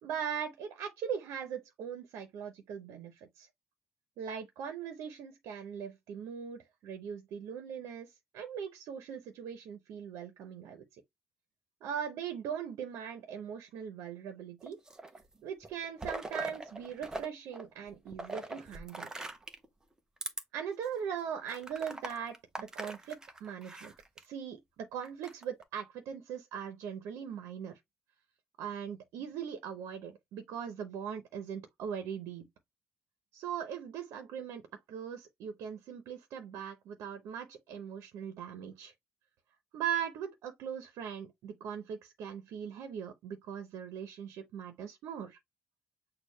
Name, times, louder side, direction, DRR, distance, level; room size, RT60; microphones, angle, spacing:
voice 1, 0.0-3.5 4.2-10.8 11.8-14.8 15.4-19.1 20.5-23.9 24.2-27.8 28.6-32.5 33.3-38.9 39.7-45.4, right 8 dB, 90° right, 0.8 m, -40 dB
sound 1, 14.6-15.3 15.6-17.3 17.5-19.7 20.2-20.4 20.9-21.0 21.5-24.2 25.0-25.6, right 2 dB, 15° right, 0.7 m, -41 dB
6.4 x 2.4 x 3.2 m
cardioid pair, 155°, 5 cm